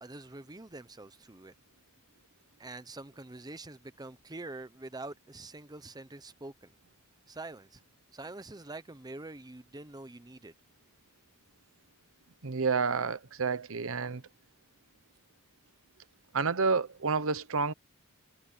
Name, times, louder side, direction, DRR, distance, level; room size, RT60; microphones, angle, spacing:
voice 1, 0.0-1.5 2.6-6.7 7.3-7.8 8.1-10.5, right 2 dB, 20° right, 0.8 m, -45 dB
voice 2, 12.4-14.2 16.3-17.7, right 4 dB, 70° right, 1.0 m, -29 dB
head